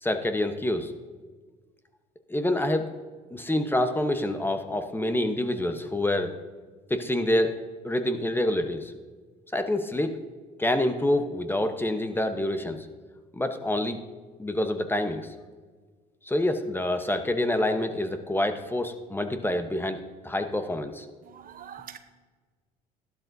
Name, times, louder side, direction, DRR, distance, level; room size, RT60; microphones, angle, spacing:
voice 1, 0.0-0.9 2.3-2.9 3.3-6.3 6.9-7.5 7.8-8.9 9.5-10.2 10.6-12.8 13.3-14.0 14.4-15.2 16.3-20.0 20.2-21.0, left 1 dB, 10° left, 7 dB, 1.0 m, -27 dB
voice 2, 21.3-22.0, right 9 dB, 45° right, 9 dB, 0.8 m, -44 dB
13.0 x 12.0 x 2.7 m, 1.4 s
hypercardioid pair, 70°, 20 cm